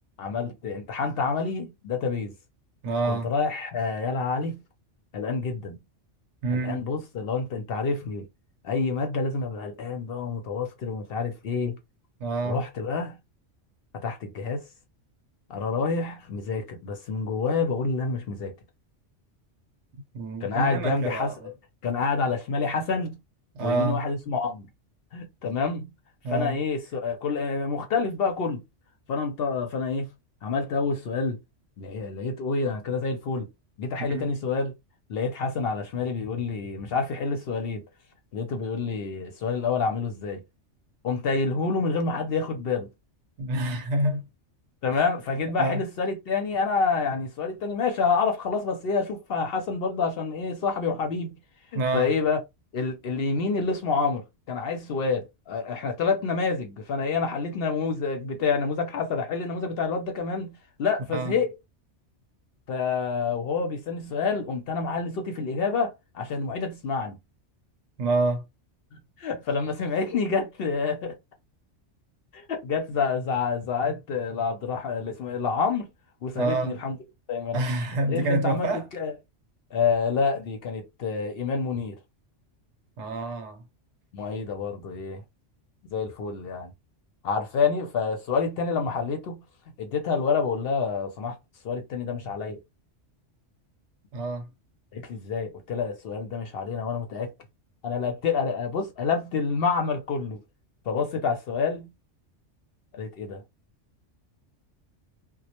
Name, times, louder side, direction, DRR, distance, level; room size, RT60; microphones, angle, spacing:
voice 1, 0.2-2.3 3.0-4.6 5.1-5.8 6.5-8.3 8.6-11.8 12.4-13.2 14.0-14.6 15.5-18.5 20.4-21.5 21.8-23.2 23.6-24.7 25.1-25.9 26.3-28.6 29.1-30.1 30.4-31.4 31.8-33.5 33.8-34.7 35.1-37.8 38.3-40.4 41.0-42.9 44.8-51.3 51.7-52.4 52.7-61.5 62.7-67.2 69.2-71.2 72.3-75.9 76.2-77.0 77.3-77.6 78.1-79.1 79.7-82.0 84.1-85.2 85.9-86.7 87.2-89.4 89.8-91.4 91.6-92.6 94.9-97.3 97.8-100.4 100.9-101.9 102.9-103.4, left 4 dB, 60° left, 0.7 m, -28 dB
voice 2, 2.8-3.3 6.4-6.9 12.2-12.6 20.1-21.5 23.5-24.0 26.2-26.6 34.1-34.3 43.4-44.3 45.6-45.8 51.7-52.1 61.1-61.4 68.0-68.5 76.3-76.8 77.5-78.9 83.0-83.6 94.1-94.5, right 2 dB, 75° right, 0.9 m, -27 dB
2.1 x 2.1 x 2.8 m
omnidirectional pair, 1.2 m